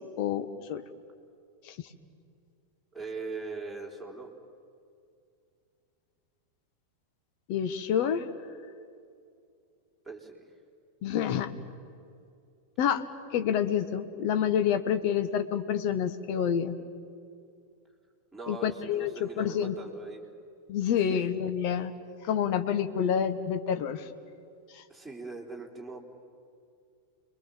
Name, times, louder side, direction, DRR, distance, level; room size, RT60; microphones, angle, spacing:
voice 1, 0.2-0.8 1.6-1.7 7.5-8.3 11.0-11.5 12.8-13.0 13.3-16.8 18.5-19.8 20.7-21.9 22.2-24.1 24.7-24.8, left 8 dB, 45° left, 9 dB, 1.6 m, -28 dB
voice 2, 2.9-4.3 10.0-10.4 18.3-20.2 21.0-21.2 24.9-26.0, right 4 dB, ahead, -4 dB, 4.2 m, -41 dB
30.0 x 22.0 x 7.3 m, 2.4 s
figure-of-eight pair, 90°, 0 cm